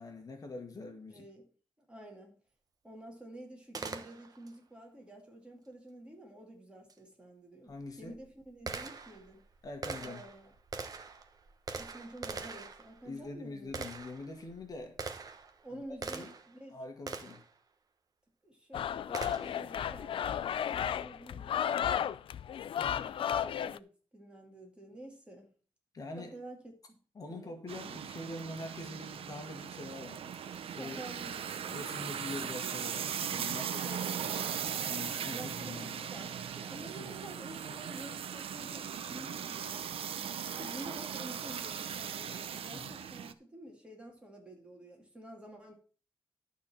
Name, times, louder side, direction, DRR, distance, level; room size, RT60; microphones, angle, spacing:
voice 1, 0.0-1.3 7.6-8.2 9.6-10.2 13.0-15.0 15.7-16.3 16.7-17.4 22.8-23.1 25.9-26.4 27.1-30.5 30.8-31.0 31.7-33.9 34.9-36.0 36.9-37.2 42.7-43.0, left 2 dB, 40° left, 1.6 m, -44 dB
voice 2, 1.1-1.5 1.8-2.3 2.8-9.4 10.0-10.5 11.7-13.8 15.6-16.8 18.4-22.2 23.0-25.5 26.2-26.6 26.9-27.0 27.3-27.5 30.8-31.8 33.8-34.6 35.2-35.8 36.0-39.9 40.6-45.7, right 1 dB, 10° right, 2.4 m, -50 dB
Gunshot gunfire, 3.7-4.6 6.9-7.0 7.7-16.6 17.1-17.5 19.1-19.7, right 4 dB, 40° right, 1.0 m, -43 dB
sound 1, 18.7-23.8, left 9 dB, 65° left, 0.4 m, -33 dB
sound 2, 27.7-43.3, right 8 dB, 75° right, 0.7 m, -39 dB
12.0 x 4.2 x 7.3 m
wide cardioid pair, 160°, 10 cm